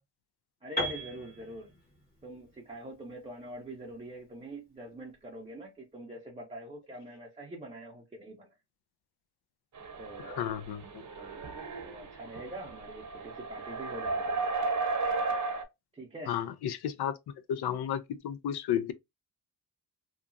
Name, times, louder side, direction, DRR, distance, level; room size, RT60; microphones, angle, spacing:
voice 1, 0.6-1.7 2.2-8.5 10.0-10.4 11.2-11.6 11.8-14.4 15.9-16.3, right 1 dB, 15° right, 0.6 m, -44 dB
Piano, 0.8-4.7, equal, 20° left, 1.2 m, -39 dB
sound 1, 9.7-15.6, right 3 dB, 45° right, 0.8 m, -34 dB
voice 2, 10.4-11.0 16.3-17.2 17.5-18.9, left 9 dB, 70° left, 0.5 m, -32 dB
2.9 x 2.3 x 2.5 m
cardioid pair, 110°, 41 cm